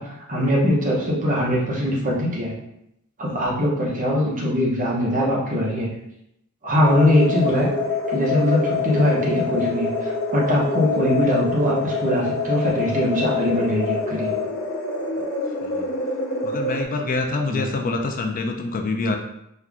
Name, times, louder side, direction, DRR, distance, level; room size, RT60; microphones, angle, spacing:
voice 1, 0.0-2.5 3.2-5.9 6.6-7.7 8.1-14.3 17.5-17.7, equal, 40° right, -4 dB, 1.1 m, -21 dB
sound 1, 6.8-16.8, left 3 dB, 60° left, 0.8 m, -26 dB
voice 2, 16.4-19.2, left 3 dB, 40° left, 4 dB, 0.4 m, -26 dB
4.3 x 2.5 x 3.5 m, 0.79 s
head